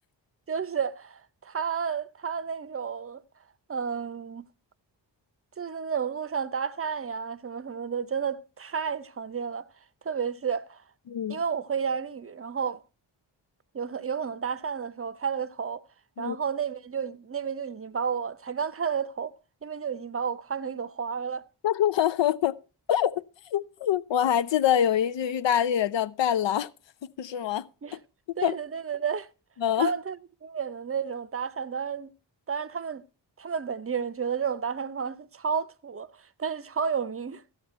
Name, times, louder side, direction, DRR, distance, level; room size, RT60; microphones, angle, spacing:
voice 1, 0.5-3.2 3.7-4.5 5.6-9.6 10.0-10.8 11.3-12.8 13.7-15.8 16.2-19.3 19.6-21.4 27.8-28.0 28.4-29.3 29.8-32.1 32.5-33.0 33.4-37.4, right 6 dB, 30° right, 0.6 m, -31 dB
voice 2, 11.1-11.4 16.2-16.4 21.6-22.5 22.9-23.2 23.5-26.7 27.0-27.7 28.4-28.6 29.6-29.9, left 10 dB, 70° left, 0.6 m, -25 dB
13.0 x 8.2 x 4.3 m
cardioid pair, 45°, 46 cm